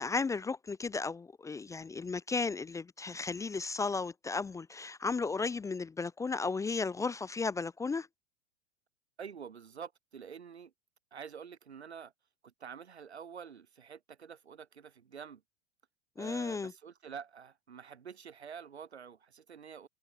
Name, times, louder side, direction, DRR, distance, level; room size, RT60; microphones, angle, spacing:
voice 1, 0.0-8.1 16.2-16.7, left 4 dB, 10° left, 0.6 m, -34 dB
voice 2, 9.2-10.7 11.1-12.1 12.4-15.4 16.2-19.9, right 7 dB, 75° right, 3.6 m, -47 dB
figure-of-eight pair, 90°, 33 cm